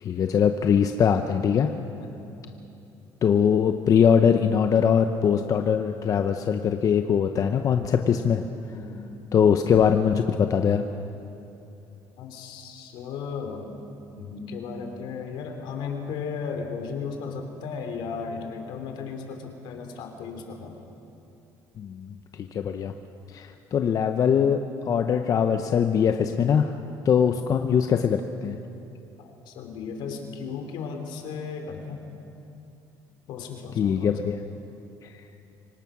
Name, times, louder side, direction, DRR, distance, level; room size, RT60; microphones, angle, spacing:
voice 1, 0.0-1.7 3.2-8.4 9.3-10.8 21.8-22.9 23.3-24.6 24.9-26.7 27.0-28.6 33.8-34.4 35.0-35.1, left 7 dB, 45° left, 6 dB, 0.8 m, -22 dB
voice 2, 2.0-2.3 8.7-9.0 12.2-13.7 14.2-20.8 27.2-27.3 29.2-32.0 33.3-34.1, left 5 dB, 80° left, 4 dB, 2.9 m, -35 dB
24.5 x 18.0 x 6.1 m, 2.8 s
cardioid pair, 120°, 8 cm